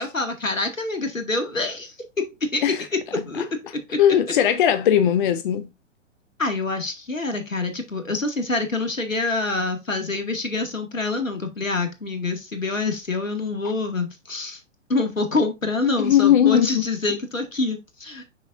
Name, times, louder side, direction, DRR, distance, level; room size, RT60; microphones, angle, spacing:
voice 1, 0.0-1.9 2.5-2.6 3.3-3.5 3.9-4.0 6.4-14.6 14.9-18.2, left 3 dB, 85° left, 1.9 m, -26 dB
voice 2, 3.9-5.7 16.0-16.8, left 10 dB, 40° left, 0.6 m, -19 dB
6.8 x 6.0 x 2.6 m
figure-of-eight pair, 110°, 38 cm